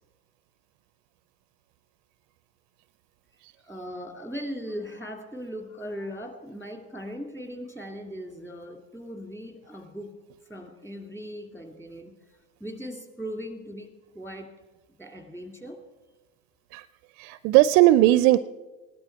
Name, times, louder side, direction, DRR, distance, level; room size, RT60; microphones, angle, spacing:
voice 1, 3.6-10.1 10.5-14.5 15.0-15.8, equal, 5° left, 5 dB, 2.4 m, -39 dB
voice 2, 17.2-18.4, right 15 dB, 50° right, 16 dB, 0.5 m, -18 dB
17.5 x 11.5 x 4.6 m, 1.2 s
hypercardioid pair, 90°, 41 cm